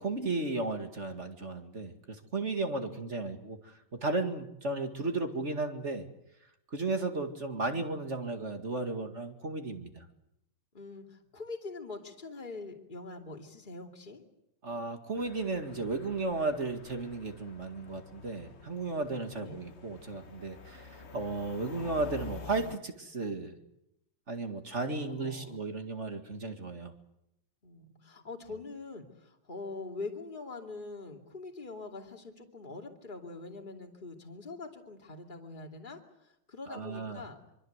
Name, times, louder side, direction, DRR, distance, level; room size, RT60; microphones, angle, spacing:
voice 1, 0.0-6.1 6.7-10.1 14.6-23.5 24.3-26.9 36.7-37.2, right 3 dB, 35° right, 5 dB, 2.3 m, -34 dB
voice 2, 2.9-3.3 10.7-14.2 19.4-19.6 25.0-25.6 27.6-37.4, left 3 dB, 20° left, 2 dB, 2.8 m, -44 dB
sound 1, 15.2-22.8, left 4 dB, 40° left, 1.2 m, -48 dB
25.0 x 25.0 x 8.1 m, 0.82 s
omnidirectional pair, 2.3 m